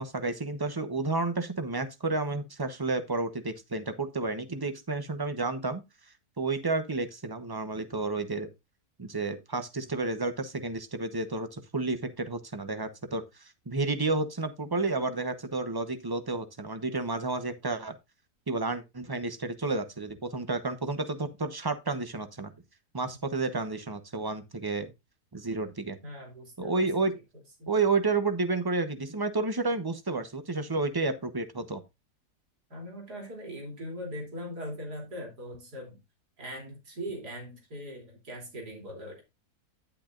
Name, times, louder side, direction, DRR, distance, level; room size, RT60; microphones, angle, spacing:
voice 1, 0.0-5.8 6.4-8.5 9.0-17.9 18.5-22.5 22.9-24.9 25.3-26.0 26.6-27.1 27.7-31.8, right 3 dB, 20° right, 0.7 m, -31 dB
voice 2, 26.0-26.8 27.6-27.7 32.7-36.0 36.4-39.2, equal, 80° right, 3.7 m, -40 dB
10.5 x 9.0 x 2.5 m
omnidirectional pair, 1.7 m